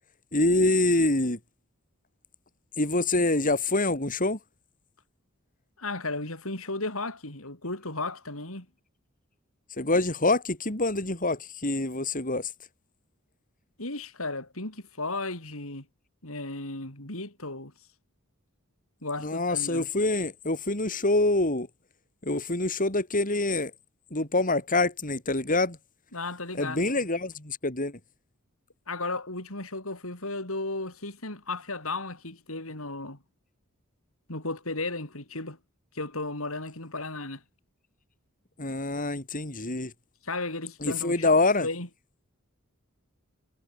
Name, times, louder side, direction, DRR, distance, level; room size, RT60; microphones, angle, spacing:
voice 1, 0.3-1.4 2.8-4.4 9.8-12.5 19.2-21.7 22.2-23.7 24.1-25.8 26.5-27.9 38.6-39.9 40.8-41.7, left 2 dB, 40° left, 5.2 m, -25 dB
voice 2, 5.8-8.7 13.8-15.9 16.2-17.7 19.0-19.9 26.1-26.8 28.9-33.2 34.3-35.6 35.9-37.4 40.2-41.3 41.6-41.9, left 2 dB, 75° left, 7.4 m, -34 dB
head